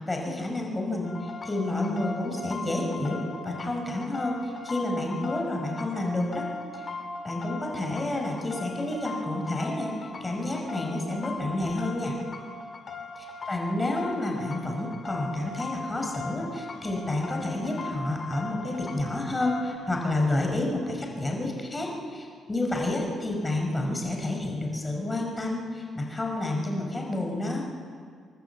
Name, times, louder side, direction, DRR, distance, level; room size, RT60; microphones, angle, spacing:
voice 1, 0.0-6.4 7.2-9.9 10.2-12.1 13.2-27.6, left 2 dB, 20° left, 1 dB, 5.4 m, -30 dB
sound 1, 1.0-19.8, left 3 dB, 40° left, 2.5 m, -39 dB
29.0 x 11.5 x 8.4 m, 2.1 s
cardioid pair, 90°, 0 cm